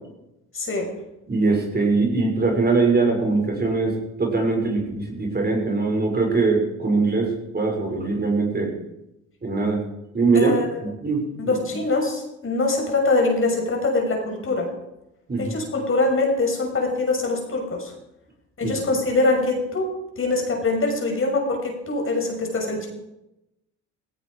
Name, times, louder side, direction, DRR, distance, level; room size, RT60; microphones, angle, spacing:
voice 1, 0.5-0.9 10.3-10.7 11.4-14.7 15.4-17.9 18.6-19.9 20.2-22.9, left 2 dB, 35° left, 1 dB, 6.3 m, -23 dB
voice 2, 1.3-8.7 9.4-9.8 10.1-10.5 11.0-11.5 15.3-15.5 18.6-18.7, right 3 dB, 25° right, 0 dB, 6.3 m, -22 dB
17.0 x 16.5 x 5.0 m, 0.88 s
hypercardioid pair, 65°, 35 cm